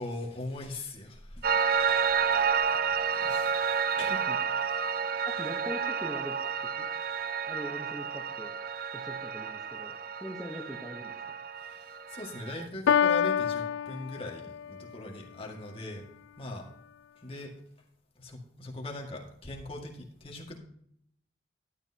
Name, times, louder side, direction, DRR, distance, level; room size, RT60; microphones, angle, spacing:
voice 1, 0.0-1.6 2.1-2.5 2.9-3.6 4.0-4.2 11.6-16.0 16.4-16.7 17.2-17.5 18.2-20.6, left 1 dB, 30° left, 0 dB, 1.9 m, -41 dB
Piano, 1.4-12.7, right 6 dB, 50° right, 0.4 m, -30 dB
voice 2, 5.2-6.4 6.8-6.9 7.5-8.6 8.9-9.9 10.2-11.4, equal, ahead, -2 dB, 1.0 m, -41 dB
Piano 2, 12.9-14.8, left 8 dB, 85° left, 0.3 m, -27 dB
12.0 x 10.5 x 2.9 m, 0.69 s
head